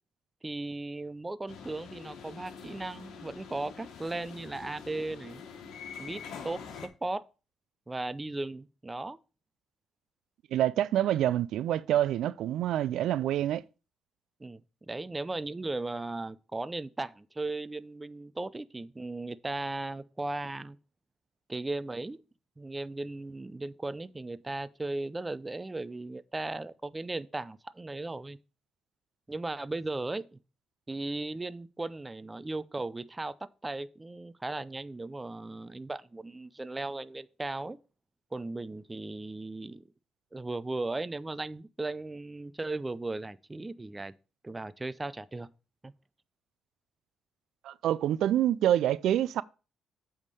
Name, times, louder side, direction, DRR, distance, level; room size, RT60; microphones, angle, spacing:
voice 1, 0.4-5.4 6.0-7.2 7.9-9.2 14.4-14.6 14.9-20.8 21.5-22.2 22.6-28.4 29.3-30.4 30.9-33.4 33.6-37.8 38.3-39.8 40.3-44.1 44.4-45.5 45.8-45.9, right 2 dB, 20° right, 0.5 m, -37 dB
sound 1, 1.5-6.9, left 6 dB, 75° left, 1.3 m, -45 dB
voice 2, 10.5-13.6 47.6-49.4, right 12 dB, 80° right, 0.3 m, -27 dB
8.2 x 3.6 x 6.6 m
cardioid pair, 90°, 0 cm